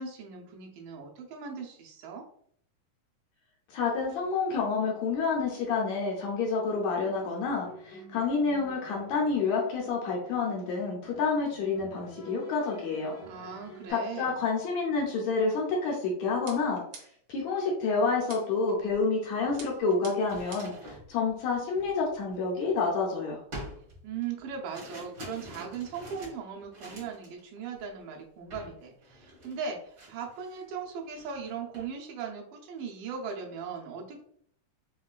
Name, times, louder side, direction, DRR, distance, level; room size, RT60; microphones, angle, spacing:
voice 1, 0.0-2.2 13.3-14.4 24.0-34.2, right 6 dB, 90° right, 0 dB, 2.3 m, -38 dB
voice 2, 3.7-13.1 13.9-16.8 17.3-23.4, left 4 dB, 75° left, -1 dB, 1.7 m, -29 dB
sound 1, 6.9-13.9, equal, 55° left, 1.0 m, -50 dB
sound 2, 16.5-17.4 18.3-18.7 19.6-20.9, right 5 dB, 75° right, 1.6 m, -48 dB
sound 3, 18.9-19.0 19.4-23.0 23.5-27.4 27.7-28.0 28.5-28.8 29.0-30.7 31.0-31.9, equal, 50° right, 1.5 m, -47 dB
5.3 x 2.2 x 2.3 m, 0.63 s
omnidirectional pair, 3.6 m